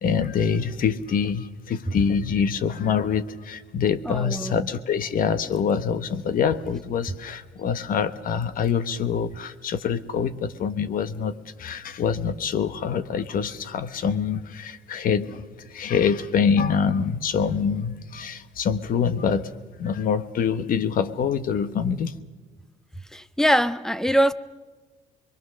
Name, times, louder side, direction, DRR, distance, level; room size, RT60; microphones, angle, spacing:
voice 1, 0.0-19.5 19.8-22.1, left 6 dB, 55° left, 1.2 m, -25 dB
voice 2, 4.0-4.7 23.1-24.3, equal, 5° left, 0.8 m, -22 dB
24.5 x 22.5 x 6.5 m
cardioid pair, 110°, 17 cm